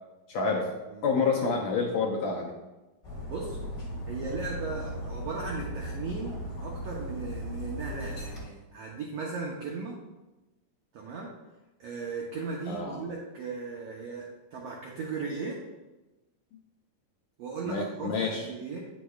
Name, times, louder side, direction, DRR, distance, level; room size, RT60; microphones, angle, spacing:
voice 1, 0.3-0.6 1.0-2.5 12.7-13.0 17.6-18.5, left 4 dB, 75° left, -1 dB, 1.7 m, -28 dB
voice 2, 0.8-1.2 3.3-3.6 4.1-9.9 10.9-11.3 11.8-15.6 17.4-18.8, right 4 dB, 70° right, -2 dB, 1.5 m, -37 dB
Dog, 3.0-8.4, equal, 30° left, 1.4 m, -37 dB
10.0 x 6.3 x 2.3 m, 1.1 s
omnidirectional pair, 3.8 m